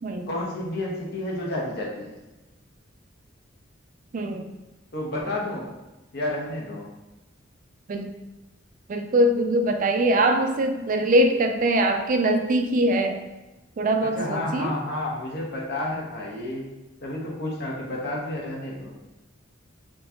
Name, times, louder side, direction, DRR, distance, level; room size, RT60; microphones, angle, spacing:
voice 1, 0.3-2.1 4.9-5.7 6.1-6.9 14.0-16.7 17.0-18.9, left 1 dB, 55° left, -3 dB, 1.0 m, -30 dB
voice 2, 4.1-4.5 7.9-8.1 8.9-13.2 13.8-14.7, right 1 dB, 40° right, 5 dB, 0.4 m, -22 dB
4.4 x 3.1 x 2.8 m, 1.1 s
head